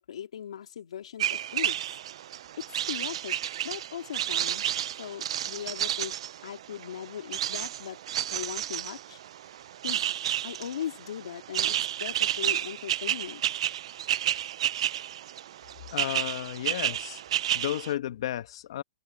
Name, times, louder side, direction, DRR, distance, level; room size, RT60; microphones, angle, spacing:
voice 1, 0.0-2.0 2.6-3.4 3.6-4.6 5.0-6.1 6.4-8.0 8.3-9.2 9.8-10.0 10.4-13.4, left 9 dB, 80° left, 2.1 m, -39 dB
sound 1, 1.2-17.9, right 11 dB, 65° right, 0.3 m, -31 dB
voice 2, 15.9-17.2 17.5-18.8, left 12 dB, 60° left, 1.1 m, -33 dB
hypercardioid pair, 155°, 3 cm